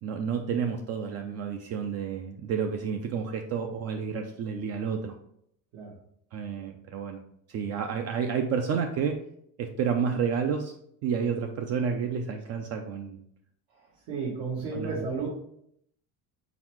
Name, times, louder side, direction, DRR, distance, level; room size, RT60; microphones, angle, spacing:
voice 1, 0.0-5.2 6.3-7.2 7.5-9.2 9.6-10.7 11.0-13.2 14.7-15.0, right 6 dB, 45° right, 4 dB, 0.4 m, -30 dB
voice 2, 14.1-15.3, right 4 dB, 80° right, -6 dB, 1.5 m, -33 dB
4.2 x 4.0 x 3.0 m, 0.70 s
cardioid pair, 165°, 36 cm